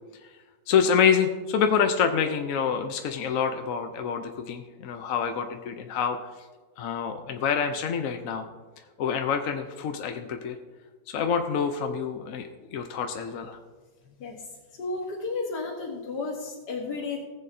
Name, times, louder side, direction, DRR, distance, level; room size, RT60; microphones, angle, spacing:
voice 1, 0.7-6.2 6.8-8.5 9.0-10.6 11.1-13.6, left 7 dB, 65° left, 6 dB, 1.0 m, -26 dB
voice 2, 14.8-17.2, left 3 dB, 85° left, -2 dB, 1.7 m, -32 dB
18.5 x 7.6 x 2.7 m, 1.4 s
omnidirectional pair, 1.8 m